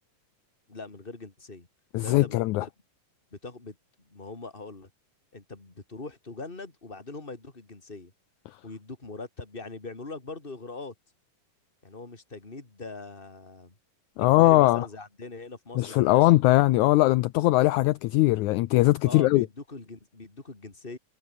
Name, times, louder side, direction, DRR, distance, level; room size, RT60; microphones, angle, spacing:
voice 1, 0.7-1.7 2.0-2.7 3.3-4.9 5.3-8.1 8.6-10.9 11.8-13.7 14.2-16.3 19.0-21.0, left 3 dB, 15° left, 3.3 m, -41 dB
voice 2, 1.9-2.7 14.2-14.9 15.8-19.5, left 17 dB, 75° left, 1.8 m, -20 dB
omnidirectional pair, 4.0 m